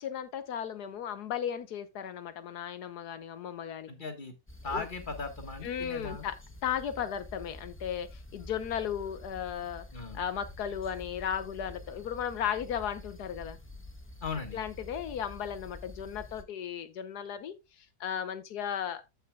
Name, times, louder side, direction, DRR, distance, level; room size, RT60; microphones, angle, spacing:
voice 1, 0.0-3.9 4.7-4.9 5.6-9.9 10.1-13.6 14.5-19.0, left 9 dB, 80° left, 1.5 m, -35 dB
voice 2, 3.9-4.3 4.6-6.3 9.9-10.2 14.2-14.6, left 4 dB, 30° left, 1.5 m, -38 dB
sound 1, 4.5-16.4, left 1 dB, 15° left, 0.5 m, -48 dB
14.5 x 5.5 x 2.3 m
omnidirectional pair, 1.7 m